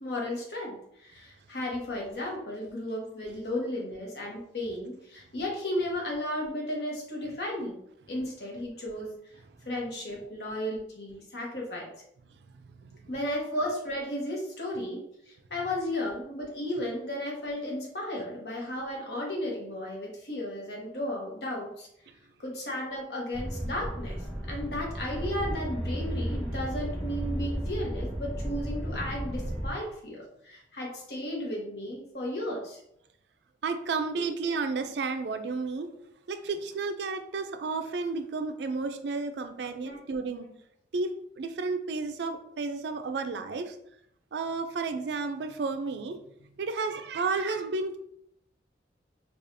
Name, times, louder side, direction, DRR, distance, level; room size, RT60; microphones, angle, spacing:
voice 1, 0.0-7.8 8.1-9.2 9.6-11.9 13.1-21.9 22.4-32.8 39.8-40.0, left 1 dB, 70° left, -2 dB, 1.1 m, -34 dB
sound 1, 23.3-29.7, equal, ahead, 0.9 m, -33 dB
voice 2, 33.6-35.9 36.3-40.5 40.9-43.8 44.3-46.2 46.6-48.0, right 4 dB, 75° right, 8 dB, 0.4 m, -32 dB
4.7 x 2.4 x 2.6 m, 0.73 s
head